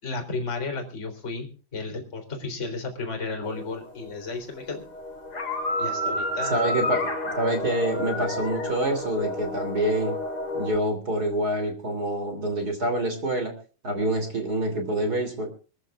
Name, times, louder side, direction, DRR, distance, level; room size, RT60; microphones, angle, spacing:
voice 1, 0.0-4.8 5.8-7.3, left 3 dB, 20° left, 4 dB, 3.6 m, -34 dB
sound 1, 3.4-4.3 4.6-10.8, left 1 dB, 35° left, 6.3 m, -30 dB
voice 2, 6.5-7.0 7.4-10.2 10.5-13.5 13.8-15.5, right 1 dB, 25° right, 6 dB, 3.1 m, -26 dB
25.0 x 14.5 x 2.4 m, 0.38 s
omnidirectional pair, 4.2 m